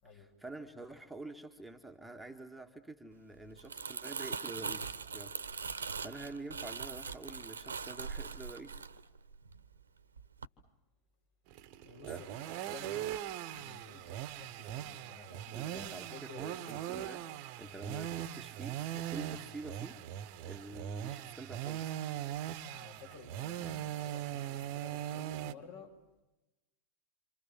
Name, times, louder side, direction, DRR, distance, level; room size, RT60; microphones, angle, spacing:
voice 1, 0.1-5.3 5.6-8.8 12.1-12.3 15.5-20.2 20.5-22.0, right 2 dB, ahead, 2 dB, 1.8 m, -47 dB
Crumpling crinkling, 3.4-9.8 10.2-10.4, right 5 dB, 75° right, 1.3 m, -41 dB
sound 1, 11.5-25.5, right 11 dB, 45° right, 1.3 m, -40 dB
voice 2, 11.8-13.1 13.5-16.4 22.6-25.9, left 5 dB, 55° left, 4 dB, 6.8 m, -53 dB
27.5 x 27.5 x 7.5 m, 1.0 s
figure-of-eight pair, 90°, 0 cm